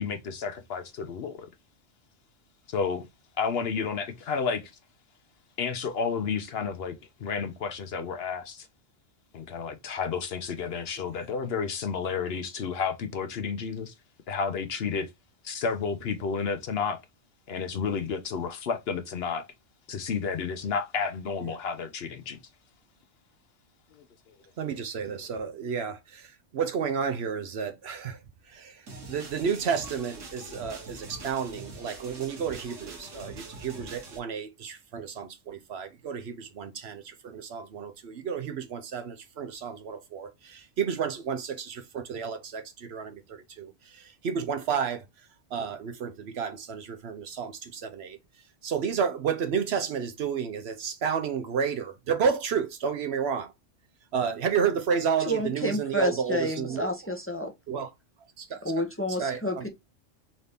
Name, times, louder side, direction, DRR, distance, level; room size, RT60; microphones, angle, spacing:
voice 1, 0.0-1.5 2.7-3.0 3.4-4.7 5.6-8.7 9.3-13.9 14.3-15.1 15.4-17.0 17.5-19.4 19.9-22.4 23.9-24.3 25.1-25.3, left 5 dB, 60° left, 0.8 m, -31 dB
voice 2, 24.6-26.3 26.5-28.2 28.5-28.7 29.1-45.0 45.5-48.2 48.6-53.5 54.1-56.9 57.7-57.9 58.4-58.6 59.2-59.6, right 6 dB, 60° right, 0.9 m, -31 dB
sound 1, 28.9-34.2, right 2 dB, 80° right, 1.6 m, -44 dB
voice 3, 55.2-57.5 58.6-59.7, left 1 dB, 15° left, 0.6 m, -29 dB
4.0 x 2.6 x 3.3 m
omnidirectional pair, 1.3 m